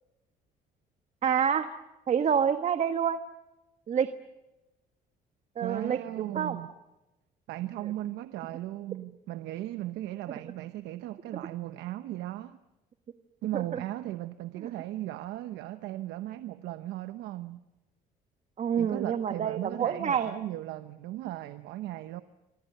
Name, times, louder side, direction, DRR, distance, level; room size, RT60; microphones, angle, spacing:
voice 1, 1.2-1.7 2.1-3.2 3.9-4.1 5.6-6.6 13.5-13.8 18.6-20.3, right 8 dB, 45° right, 9 dB, 1.4 m, -27 dB
voice 2, 5.6-6.7 7.5-12.6 13.4-17.6 18.8-22.2, right 15 dB, 85° right, 11 dB, 1.0 m, -37 dB
28.0 x 24.0 x 6.7 m, 0.98 s
cardioid pair, 110°, 17 cm